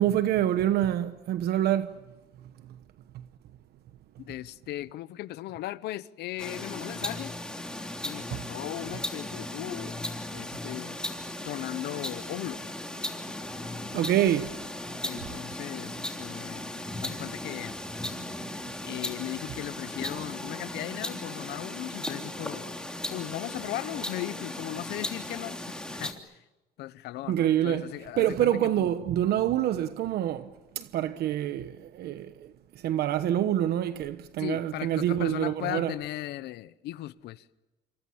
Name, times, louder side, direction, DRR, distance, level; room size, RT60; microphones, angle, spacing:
voice 1, 0.0-1.9 3.1-3.2 8.3-8.4 13.9-14.5 27.3-27.9 28.2-32.5 32.8-35.9, right 11 dB, 70° right, 1.1 m, -26 dB
voice 2, 4.3-7.3 8.0-10.0 10.3-11.0 11.4-12.7 15.0-16.6 17.0-18.0 18.8-22.7 23.1-26.3 26.8-28.9 34.4-37.4, left 15 dB, 80° left, 0.9 m, -37 dB
sound 1, 6.4-26.1, left 1 dB, 5° left, 3.2 m, -37 dB
28.0 x 25.0 x 7.2 m
cardioid pair, 110°, 17 cm